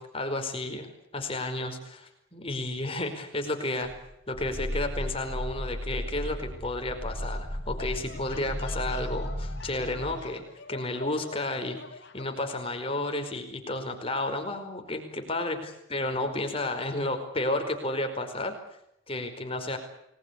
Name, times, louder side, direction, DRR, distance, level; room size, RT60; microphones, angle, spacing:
voice 1, 0.0-3.9 4.3-10.4 10.7-18.5 19.1-19.8, left 2 dB, 25° left, 6 dB, 4.9 m, -32 dB
Growling, 3.9-10.2, equal, 5° right, 5.2 m, -35 dB
sound 1, 7.8-12.5, left 4 dB, 55° left, 3.7 m, -46 dB
29.5 x 20.5 x 8.3 m, 0.82 s
head